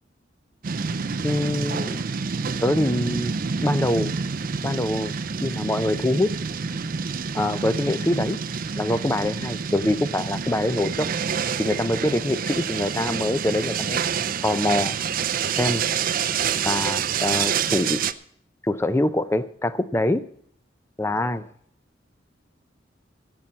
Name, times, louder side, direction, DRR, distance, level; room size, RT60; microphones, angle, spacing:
sound 1, 0.6-18.1, right 6 dB, 50° right, 0.5 m, -27 dB
voice 1, 1.2-2.0 2.6-3.3 3.6-4.1 4.6-5.1 5.4-6.3 7.3-8.4 8.8-11.1 11.6-14.0 14.4-15.0 15.6-15.8 16.6-18.1 18.6-20.3 21.0-21.5, left 1 dB, 15° left, 0.5 m, -24 dB
16.5 x 5.6 x 7.5 m
head